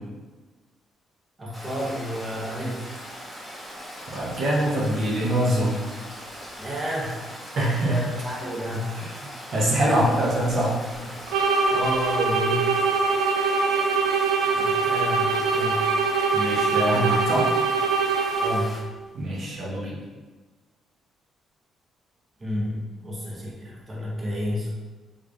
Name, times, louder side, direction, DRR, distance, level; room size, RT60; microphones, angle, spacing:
voice 1, 1.4-2.9 6.6-7.2 7.9-9.0 9.6-10.0 11.7-12.8 14.5-15.9 18.4-18.8 22.4-24.7, equal, 25° right, -5 dB, 1.0 m, -31 dB
Stream, 1.5-18.8, equal, ahead, 1.5 m, -40 dB
voice 2, 4.1-5.8 7.5-8.0 8.9-10.8 11.1-11.2 16.3-17.5 19.1-20.0, right 1 dB, 60° right, -5 dB, 0.8 m, -24 dB
sound 1, 11.3-18.8, right 4 dB, 85° right, 0.4 m, -23 dB
3.7 x 3.1 x 2.4 m, 1.3 s
cardioid pair, 90°, 0 cm